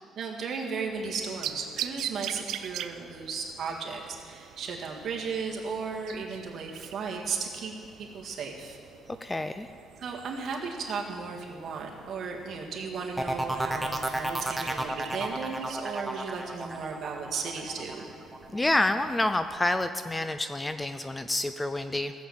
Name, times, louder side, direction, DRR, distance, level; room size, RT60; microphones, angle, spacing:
voice 1, 0.2-8.8 10.0-18.1, right 5 dB, 45° right, -1 dB, 2.0 m, -35 dB
sound 1, 0.9-19.9, right 11 dB, 70° right, 0.5 m, -44 dB
voice 2, 9.2-9.7 18.5-22.1, left 2 dB, 10° left, 10 dB, 0.3 m, -28 dB
sound 2, 13.2-18.8 19.2-19.6, right 1 dB, 5° right, 0.9 m, -32 dB
16.0 x 7.3 x 7.8 m, 2.4 s
cardioid pair, 155°, 0 cm